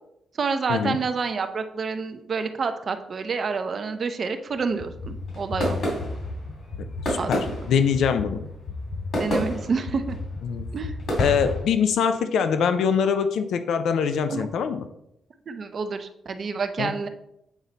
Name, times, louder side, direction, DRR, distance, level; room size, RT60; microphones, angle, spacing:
voice 1, 0.4-5.8 7.2-7.5 9.2-10.2 10.7-10.9 14.3-14.5 15.5-17.1, right 5 dB, 50° right, 8 dB, 0.6 m, -28 dB
sound 1, 4.6-11.6, left 1 dB, 60° left, 2.8 m, -30 dB
voice 2, 7.1-8.4 10.4-10.6 11.2-14.8 16.8-16.9, left 7 dB, 85° left, 9 dB, 0.5 m, -23 dB
8.2 x 4.0 x 4.1 m, 0.80 s
cardioid pair, 110°, 0 cm